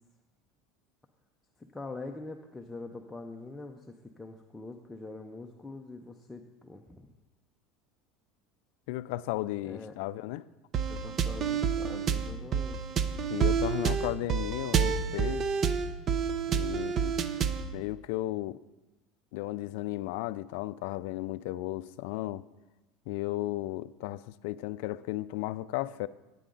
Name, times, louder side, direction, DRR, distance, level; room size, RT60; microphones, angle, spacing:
voice 1, 1.7-7.1 9.6-9.9 10.9-12.8, left 3 dB, 10° left, 2 dB, 0.6 m, -44 dB
voice 2, 8.9-10.4 13.3-15.5 16.5-17.1 17.7-18.6 19.3-22.4 23.1-26.1, left 16 dB, 75° left, 17 dB, 0.3 m, -34 dB
sound 1, 10.7-17.7, right 6 dB, 35° right, 0.6 m, -29 dB
9.8 x 9.2 x 3.8 m, 1.1 s
supercardioid pair, 130°, 0 cm